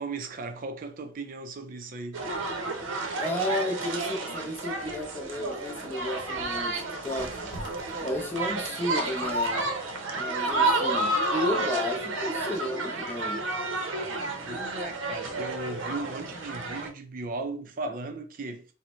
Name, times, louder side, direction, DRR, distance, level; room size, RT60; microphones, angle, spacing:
voice 1, 0.0-2.3 14.5-18.7, right 3 dB, 45° right, 0.4 m, -36 dB
sound 1, 2.1-16.9, right 2 dB, 80° right, 0.7 m, -31 dB
voice 2, 3.1-7.5 8.0-9.7 10.1-13.4, left 1 dB, 10° left, 0.5 m, -33 dB
sound 2, 5.9-13.9 14.2-14.4, equal, 50° left, 0.9 m, -50 dB
3.9 x 2.1 x 3.0 m
head